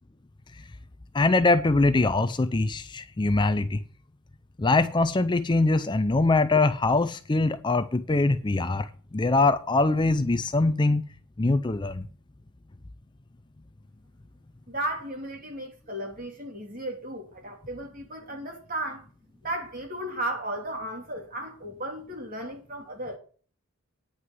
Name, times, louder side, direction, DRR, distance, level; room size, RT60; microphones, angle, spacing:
voice 1, 1.1-3.8 4.6-11.0 11.4-12.1, left 2 dB, 20° left, 0.4 m, -23 dB
voice 2, 14.7-19.1 19.4-23.2, right 1 dB, 40° right, 3.2 m, -35 dB
9.6 x 6.3 x 7.4 m
head